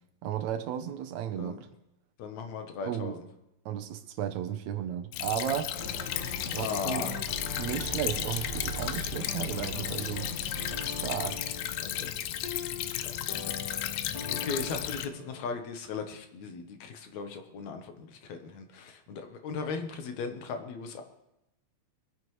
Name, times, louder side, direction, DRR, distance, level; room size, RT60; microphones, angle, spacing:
voice 1, 0.2-1.7 2.8-3.2 3.7-5.7 6.4-7.1 7.6-10.3 10.8-11.4, right 10 dB, 75° right, 8 dB, 2.1 m, -34 dB
voice 2, 2.2-3.2 6.6-7.2 11.8-12.1 13.0-13.5 14.4-21.0, left 5 dB, 75° left, 6 dB, 2.3 m, -37 dB
Stream / Trickle dribble, 5.1-15.1, left 12 dB, 90° left, 2.0 m, -34 dB
sound 1, 5.7-15.6, left 1 dB, 45° left, 1.6 m, -40 dB
22.0 x 9.7 x 3.1 m, 0.89 s
omnidirectional pair, 3.3 m